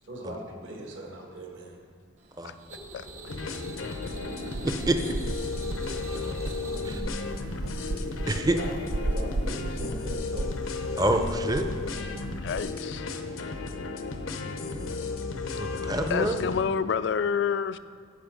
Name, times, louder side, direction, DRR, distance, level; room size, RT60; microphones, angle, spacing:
voice 1, 0.0-1.8 8.4-8.7 9.0-10.5 14.3-15.0 15.8-16.3, right 1 dB, 65° right, 0 dB, 1.6 m, -41 dB
sound 1, 2.2-7.0, right 2 dB, 35° right, 0.9 m, -44 dB
voice 2, 2.9-3.3 12.4-13.0 16.1-17.8, left 6 dB, 55° left, 14 dB, 0.3 m, -28 dB
sound 2, 3.3-16.6, left 3 dB, 80° left, 0.7 m, -34 dB
sound 3, 4.0-12.7, right 2 dB, 85° right, 0.5 m, -35 dB
voice 3, 4.6-5.0 6.8-7.0 8.3-8.6 11.0-11.7 15.6-16.3, right 1 dB, 20° right, 6 dB, 0.6 m, -26 dB
14.5 x 5.2 x 5.2 m, 2.1 s
head